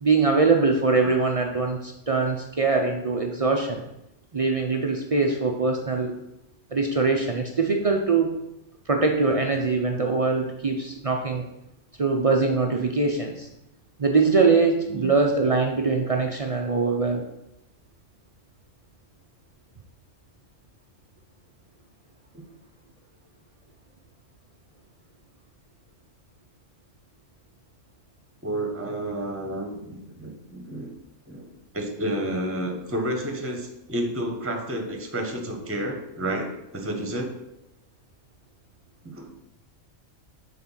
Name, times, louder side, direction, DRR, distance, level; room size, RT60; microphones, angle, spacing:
voice 1, 0.0-3.8 4.3-6.2 6.7-8.4 8.9-11.5 12.0-13.5 14.0-17.2, right 4 dB, 45° right, 2 dB, 0.4 m, -22 dB
voice 2, 28.4-30.9 31.3-37.3 39.0-39.3, right 1 dB, 10° right, 3 dB, 0.9 m, -30 dB
6.6 x 4.0 x 5.5 m, 0.87 s
omnidirectional pair, 1.4 m